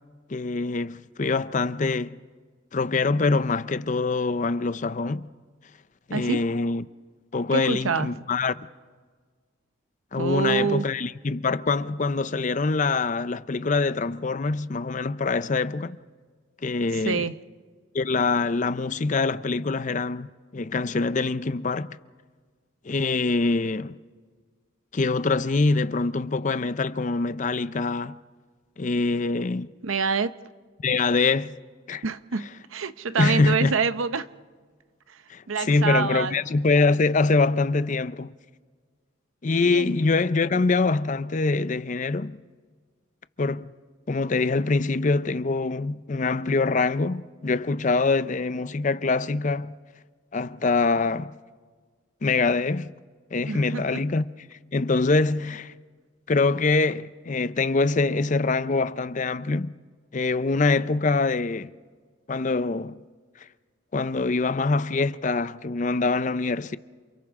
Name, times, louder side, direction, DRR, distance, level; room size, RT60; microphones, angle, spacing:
voice 1, 0.3-2.2 2.7-5.3 6.1-6.8 7.3-8.5 10.1-16.0 16.6-17.3 17.9-21.9 22.8-24.0 24.9-28.2 28.8-29.7 30.8-31.6 31.9-32.0 33.2-33.8 35.3-38.3 39.4-42.4 43.4-43.7 44.1-49.8 50.3-51.3 52.2-52.9 53.3-54.2 54.7-55.7 56.3-59.7 60.1-61.7 62.3-63.0 63.9-66.8, left 3 dB, 40° left, 0.5 m, -24 dB
voice 2, 7.5-8.1 10.2-10.9 17.1-17.3 29.8-30.3 32.0-34.3 35.5-36.3 39.7-39.9 53.5-54.0, right 5 dB, 90° right, 0.7 m, -26 dB
28.5 x 28.0 x 3.7 m
head